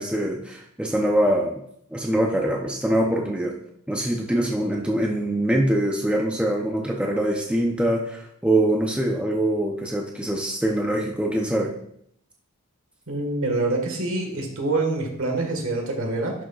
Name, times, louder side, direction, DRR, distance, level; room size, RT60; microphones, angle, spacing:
voice 1, 0.0-1.6 1.9-3.5 3.9-11.7, right 1 dB, 5° right, 0 dB, 0.6 m, -23 dB
voice 2, 13.1-16.3, right 2 dB, 65° right, 2 dB, 1.6 m, -25 dB
10.5 x 6.3 x 2.4 m, 0.71 s
head